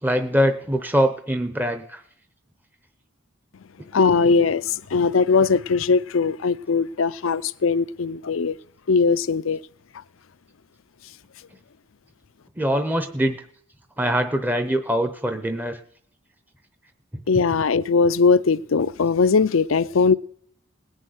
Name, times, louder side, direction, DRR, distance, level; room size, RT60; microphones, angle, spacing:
voice 1, 0.0-2.0 12.6-13.4 14.0-15.8 17.1-17.2, equal, 10° right, 0.8 m, -23 dB
voice 2, 3.9-8.6 8.9-9.6 17.3-20.2, left 4 dB, 70° left, 0.5 m, -20 dB
19.0 x 6.4 x 9.4 m
head